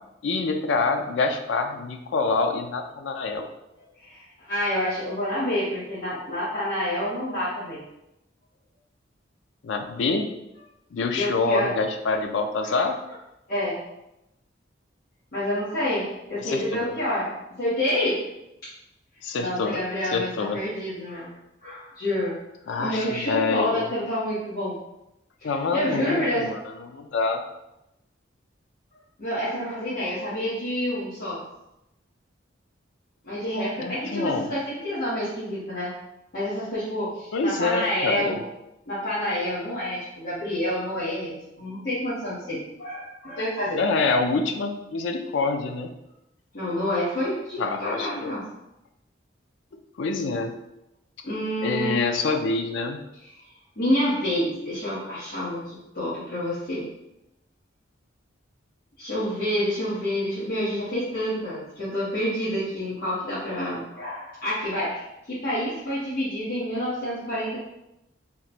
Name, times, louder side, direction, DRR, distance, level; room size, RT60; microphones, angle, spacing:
voice 1, 0.2-3.5 9.6-10.3 10.9-12.9 16.4-16.9 19.2-19.8 20.1-20.6 22.7-23.9 25.4-27.4 33.8-34.5 37.3-38.4 43.7-45.9 47.6-48.3 50.0-50.5 51.6-53.0, left 3 dB, 75° left, 5 dB, 0.4 m, -26 dB
voice 2, 4.0-7.8 11.1-11.7 12.6-12.8 13.5-13.8 15.3-18.2 19.3-21.3 21.6-22.4 22.8-24.8 25.4-26.5 29.2-31.4 33.2-35.9 36.3-38.4 38.9-43.8 46.5-48.5 51.2-52.2 53.2-53.3 53.8-56.9 59.0-67.6, left 1 dB, 50° left, -12 dB, 1.0 m, -28 dB
3.0 x 2.1 x 4.0 m, 0.89 s
head